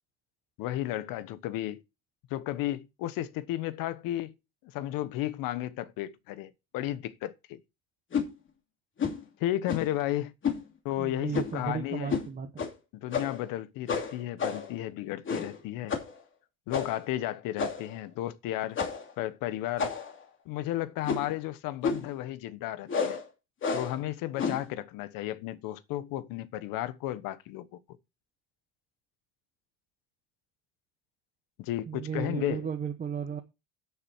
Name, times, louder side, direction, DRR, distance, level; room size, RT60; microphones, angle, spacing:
voice 1, 0.6-1.8 2.3-4.3 4.6-7.6 9.4-10.3 10.8-12.1 12.9-16.0 16.7-18.8 19.2-19.9 20.4-23.2 23.7-27.8 31.6-32.7, left 14 dB, 70° left, 1.2 m, -33 dB
sound 1, 8.1-8.3 9.0-9.2 9.7-10.0 10.4-10.6 11.3-11.6 12.1-12.3 12.6-12.7 13.1-13.5 13.9-14.7 15.2-15.6 15.9-16.1 16.7-17.0 17.6-18.0 18.7-19.1 19.8-20.2 21.0-21.4 21.8-22.1 22.9-23.2 23.6-24.0 24.4-24.7, left 5 dB, 35° left, 2.8 m, -31 dB
voice 2, 11.0-12.7 31.9-33.4, right 7 dB, 25° right, 1.0 m, -34 dB
12.5 x 7.0 x 4.6 m
cardioid pair, 135°, 35 cm